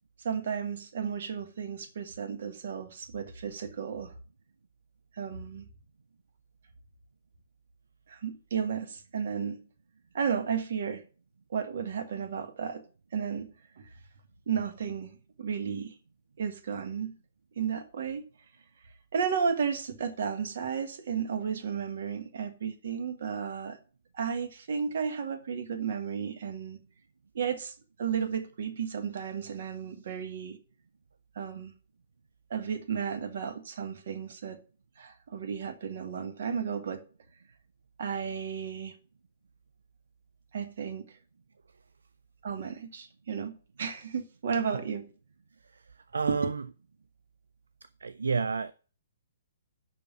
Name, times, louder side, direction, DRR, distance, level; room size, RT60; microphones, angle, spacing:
voice 1, 0.2-4.1 5.2-5.7 8.1-9.7 10.1-11.0 11.5-12.8 13.1-13.5 13.8-13.9 14.5-15.9 16.4-17.2 17.5-18.3 19.1-23.8 24.1-26.8 27.3-27.7 28.0-30.6 31.3-31.7 32.5-34.6 35.0-37.0 38.0-38.9 40.5-41.1 42.4-45.1 46.3-46.4, right 7 dB, 50° right, 1.5 m, -33 dB
voice 2, 46.1-46.6 48.0-48.7, right 5 dB, 65° right, 0.4 m, -30 dB
6.8 x 5.8 x 7.1 m
figure-of-eight pair, 120°, 0 cm